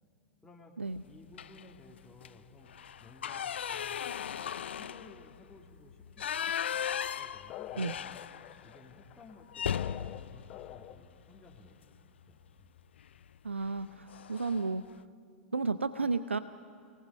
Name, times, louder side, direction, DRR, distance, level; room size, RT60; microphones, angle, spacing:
voice 1, 0.4-0.7 1.1-2.7 3.0-4.0 4.5-6.6 7.2-8.2 8.6-12.0 12.3-12.8, left 3 dB, 10° left, -1 dB, 2.4 m, -56 dB
sound 1, 1.3-1.8 2.1-2.3 2.7-8.7 9.0-9.1 9.5-11.7 13.0-13.3 13.6-13.8 14.1-14.7, left 9 dB, 70° left, 0.4 m, -37 dB
sound 2, 7.5-11.2, left 13 dB, 35° left, 0.9 m, -46 dB
voice 2, 13.4-14.8 15.5-16.4, right 4 dB, 85° right, 14 dB, 0.5 m, -32 dB
29.0 x 18.5 x 5.4 m, 2.5 s
figure-of-eight pair, 90°, 6 cm